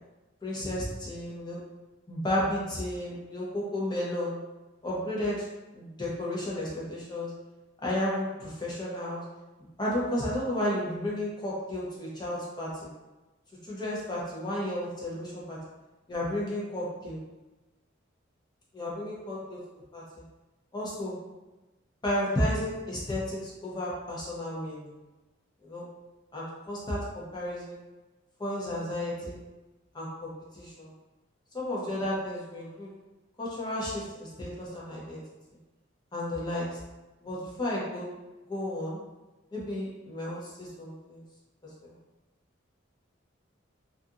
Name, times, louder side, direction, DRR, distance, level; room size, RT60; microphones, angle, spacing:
voice 1, 0.4-1.6 2.1-4.4 4.8-5.4 5.7-7.3 7.8-9.2 9.8-12.7 13.6-15.6 16.1-17.2 18.7-19.6 19.9-20.2 20.7-21.1 22.0-24.9 25.6-25.8 26.3-27.8 28.4-29.4 29.9-30.9 31.5-32.9 33.4-35.2 36.1-36.8 37.2-38.1 38.5-39.0 39.5-41.2 41.6-41.9, left 1 dB, 20° left, -6 dB, 0.6 m, -33 dB
2.7 x 2.5 x 2.4 m, 1.1 s
head